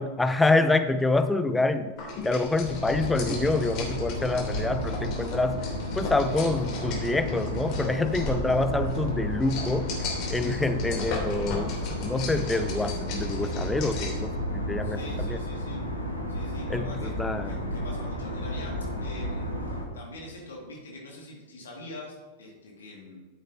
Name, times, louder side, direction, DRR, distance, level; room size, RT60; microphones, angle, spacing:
voice 1, 0.0-1.9 2.2-5.6 6.0-9.9 10.3-15.4 16.7-17.6, left 2 dB, 10° left, 9 dB, 0.5 m, -26 dB
sound 1, 2.0-14.3, left 3 dB, 40° left, 2.9 m, -37 dB
sound 2, 2.5-19.8, equal, 85° left, 1.6 m, -32 dB
voice 2, 14.8-15.9 16.3-17.2 17.4-19.5 19.9-23.2, left 1 dB, 65° left, -2 dB, 2.0 m, -44 dB
13.5 x 7.3 x 2.7 m, 1.4 s
figure-of-eight pair, 90°, 0 cm